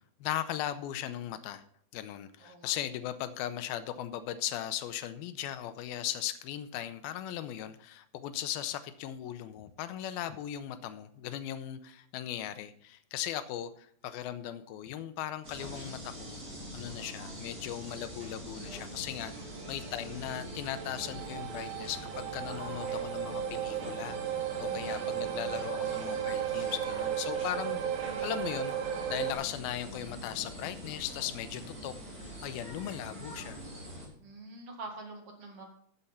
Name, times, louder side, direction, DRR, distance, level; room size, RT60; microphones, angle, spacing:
voice 1, 0.2-1.6 1.9-16.4 16.7-28.7 29.1-33.6, left 11 dB, 85° left, 11 dB, 2.5 m, -38 dB
voice 2, 2.4-2.8 19.3-19.7 24.7-25.2 34.2-35.6, right 2 dB, 45° right, 1 dB, 2.5 m, -46 dB
sound 1, 15.4-34.1, equal, 25° right, 3.7 m, -44 dB
sound 2, 19.0-29.3, right 10 dB, 70° right, 2.3 m, -35 dB
14.0 x 6.7 x 4.3 m, 0.62 s
omnidirectional pair, 4.4 m